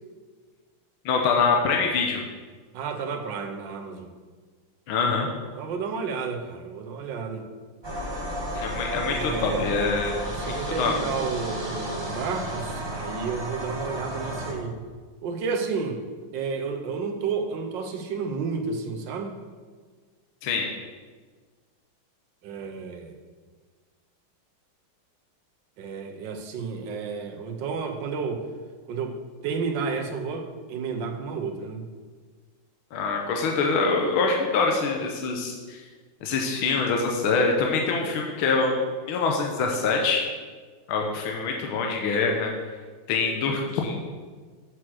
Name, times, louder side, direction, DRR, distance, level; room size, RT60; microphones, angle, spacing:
voice 1, 1.0-2.2 4.9-5.3 8.5-10.9 20.4-20.7 32.9-35.8 36.2-38.8 39.1-40.2 40.9-42.5 43.1-43.9, left 4 dB, 75° left, 1 dB, 1.7 m, -25 dB
voice 2, 2.7-4.1 5.5-7.4 9.1-9.6 10.2-14.7 15.2-16.0 16.3-19.4 22.4-23.1 25.8-28.4 28.9-29.2 29.4-31.9, right 5 dB, 65° right, 5 dB, 1.5 m, -31 dB
sound 1, 7.8-14.5, equal, 15° right, 1.0 m, -33 dB
7.4 x 6.4 x 6.1 m, 1.5 s
omnidirectional pair, 2.3 m